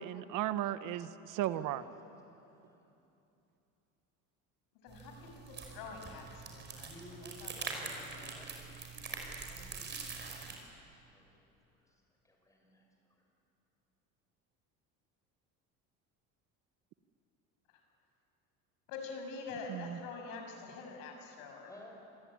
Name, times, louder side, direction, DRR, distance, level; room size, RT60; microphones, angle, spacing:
voice 1, 0.0-1.8 19.7-20.0, right 12 dB, 65° right, 12 dB, 1.1 m, -35 dB
voice 2, 1.5-2.9 6.7-7.3 7.6-13.2 21.6-21.9, left 1 dB, 10° left, 0 dB, 6.7 m, -58 dB
voice 3, 4.8-6.9 7.2-8.3 18.9-21.7, left 4 dB, 80° left, 3 dB, 6.8 m, -46 dB
sound 1, 4.9-10.5, right 4 dB, 30° right, 5.7 m, -44 dB
27.0 x 22.0 x 10.0 m, 2.8 s
cardioid pair, 135°, 34 cm